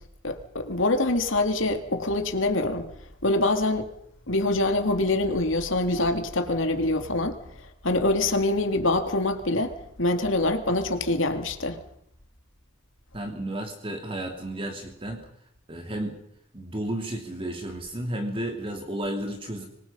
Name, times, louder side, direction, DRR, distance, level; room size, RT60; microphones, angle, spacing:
voice 1, 0.2-2.9 3.2-3.9 4.3-7.4 7.8-11.8, left 2 dB, 65° left, 2.6 m, -25 dB
voice 2, 13.1-15.3 15.7-16.2 16.5-19.7, right 1 dB, 25° right, 2.6 m, -32 dB
26.0 x 21.5 x 5.6 m
head